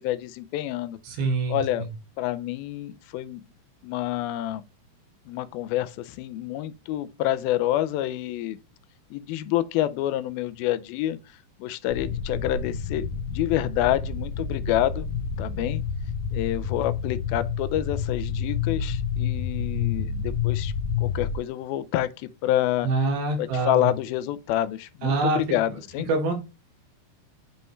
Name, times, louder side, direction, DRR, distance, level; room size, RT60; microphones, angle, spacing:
voice 1, 0.0-1.0 1.5-1.9 2.2-3.4 3.8-4.6 5.3-8.6 9.1-11.2 11.6-13.0 13.3-15.1 15.4-15.8 16.3-20.7 21.0-22.9 23.4-26.1, left 13 dB, 90° left, 2.5 m, -28 dB
voice 2, 1.1-1.9 22.8-23.9 25.0-25.4 26.1-26.3, right 3 dB, 80° right, 3.8 m, -25 dB
sound 1, 11.9-21.4, left 6 dB, 70° left, 2.7 m, -29 dB
7.7 x 5.5 x 3.1 m
omnidirectional pair, 4.3 m